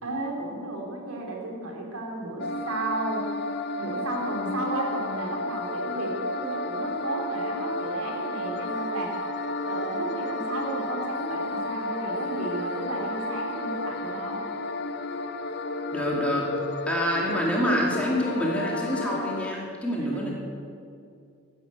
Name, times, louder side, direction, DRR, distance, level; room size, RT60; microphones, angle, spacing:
voice 1, 0.0-3.3 3.8-9.3 9.6-14.4 20.1-20.2, right 2 dB, 85° right, 0 dB, 3.4 m, -33 dB
sound 1, 2.4-19.5, left 2 dB, 50° left, 0.7 m, -32 dB
voice 2, 15.9-16.5 16.9-20.3, equal, 5° left, -3 dB, 2.5 m, -26 dB
14.0 x 11.0 x 8.1 m, 2.3 s
head